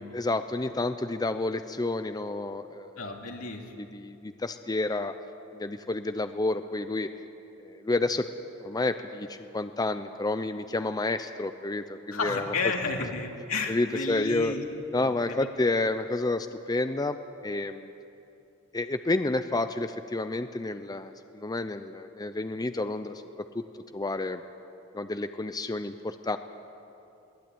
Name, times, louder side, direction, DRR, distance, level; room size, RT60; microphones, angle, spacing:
voice 1, 0.1-3.1 3.8-5.1 5.5-7.1 7.6-8.3 8.6-12.5 13.7-14.5 14.9-17.2 17.4-17.9 18.7-23.6 23.9-24.4 24.9-26.4, left 2 dB, 20° left, 9 dB, 0.6 m, -30 dB
voice 2, 3.0-3.9 12.1-14.6 15.0-15.5, left 4 dB, 80° left, 1 dB, 2.8 m, -32 dB
22.5 x 18.0 x 9.3 m, 2.8 s
head